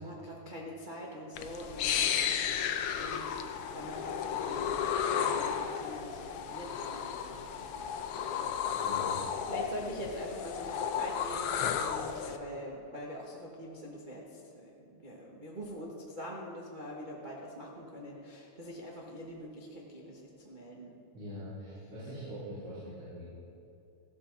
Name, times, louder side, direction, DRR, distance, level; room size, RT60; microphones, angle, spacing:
voice 1, 0.0-2.2 2.4-3.5 3.7-21.0, equal, 85° right, -3 dB, 0.4 m, -44 dB
sound 1, 1.4-12.4, left 8 dB, 80° left, 1.3 m, -33 dB
voice 2, 8.8-9.2 21.1-23.2, equal, 55° right, -12 dB, 4.7 m, -43 dB
15.0 x 12.5 x 3.9 m, 2.8 s
omnidirectional pair, 3.3 m